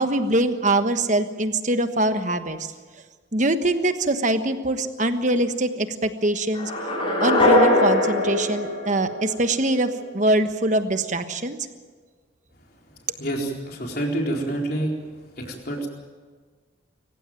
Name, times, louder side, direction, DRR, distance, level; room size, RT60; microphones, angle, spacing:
voice 1, 0.0-2.7 3.3-6.7 7.2-11.6, right 1 dB, 40° right, 9 dB, 1.3 m, -23 dB
sound 1, 6.5-9.6, left 1 dB, 30° left, 6.6 m, -21 dB
voice 2, 13.2-14.9 15.4-15.9, right 1 dB, 50° left, 0 dB, 4.2 m, -27 dB
25.0 x 15.5 x 9.2 m, 1.4 s
head